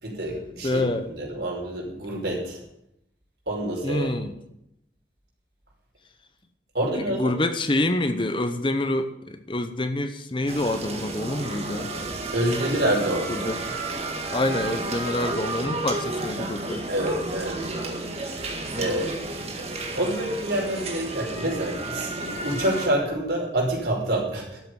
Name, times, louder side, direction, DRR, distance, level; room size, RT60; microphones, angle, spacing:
voice 1, 0.0-2.6 3.5-4.2 6.7-7.3 12.3-13.3 16.9-17.7 18.8-19.1 19.7-24.6, right 1 dB, 65° right, -1 dB, 5.5 m, -27 dB
voice 2, 0.6-1.1 3.8-4.3 6.9-11.9 13.3-13.6 14.3-16.9 18.7-19.1, left 1 dB, 25° left, 9 dB, 0.9 m, -27 dB
sound 1, 10.5-22.9, right 2 dB, 35° right, 1.8 m, -32 dB
13.0 x 7.8 x 9.5 m, 0.80 s
head